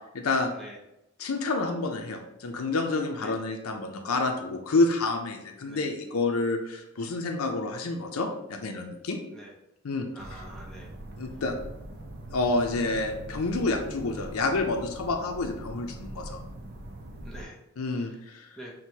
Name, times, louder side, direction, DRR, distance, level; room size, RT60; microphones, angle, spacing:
voice 1, 0.1-0.5 1.2-9.2 9.8-10.1 11.2-11.5 12.3-16.4 17.8-18.5, left 3 dB, 85° left, 3 dB, 0.5 m, -28 dB
voice 2, 10.1-10.9 17.2-17.6 17.9-18.2 18.6-18.7, right 1 dB, ahead, -3 dB, 0.6 m, -45 dB
sound 1, 10.2-17.4, right 1 dB, 50° right, 0.5 m, -42 dB
6.1 x 2.2 x 2.8 m, 0.86 s
head